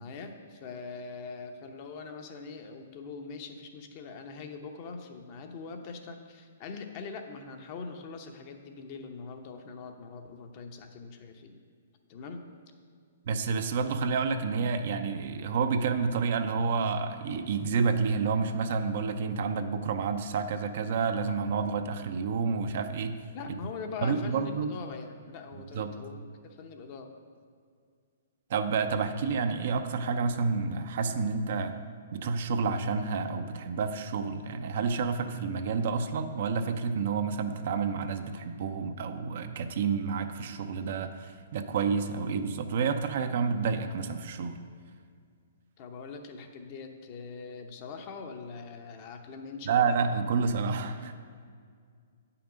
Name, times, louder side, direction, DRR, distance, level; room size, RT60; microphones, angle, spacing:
voice 1, 0.0-11.6 12.1-12.4 23.3-27.1 45.8-49.8, left 4 dB, 40° left, 5 dB, 0.8 m, -42 dB
voice 2, 13.3-23.2 24.0-24.7 25.7-25.9 28.5-31.7 32.1-44.6 49.7-51.1, right 5 dB, 55° right, 8 dB, 0.6 m, -29 dB
8.6 x 5.8 x 5.0 m, 2.1 s
hypercardioid pair, 140°, 0 cm